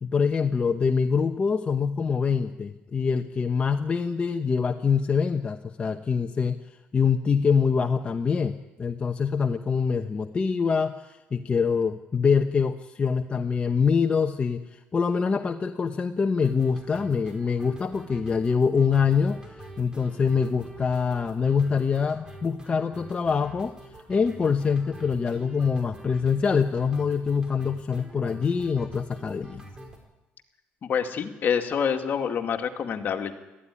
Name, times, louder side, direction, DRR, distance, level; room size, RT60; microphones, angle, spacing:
voice 1, 0.0-6.6 6.9-19.4 19.8-23.7 24.1-29.7, left 5 dB, 30° left, 5 dB, 0.9 m, -25 dB
sound 1, 16.4-30.0, right 1 dB, 20° right, 4.5 m, -46 dB
voice 2, 30.8-33.3, left 7 dB, 50° left, 4 dB, 2.2 m, -27 dB
18.5 x 14.0 x 9.9 m, 1.0 s
cardioid pair, 110°, 4 cm